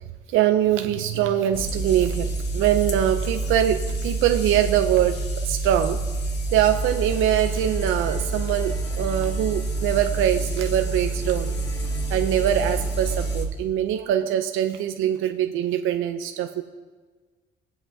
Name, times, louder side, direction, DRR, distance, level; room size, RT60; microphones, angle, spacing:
voice 1, 0.3-5.2 5.4-6.0 6.5-11.6 12.1-16.6, right 11 dB, 90° right, 6 dB, 0.5 m, -23 dB
sound 1, 1.5-13.5, right 2 dB, 60° left, 1.5 m, -27 dB
sound 2, 6.6-13.4, equal, 15° left, 3.4 m, -43 dB
21.5 x 7.8 x 2.7 m, 1.4 s
cardioid pair, 90°, 20 cm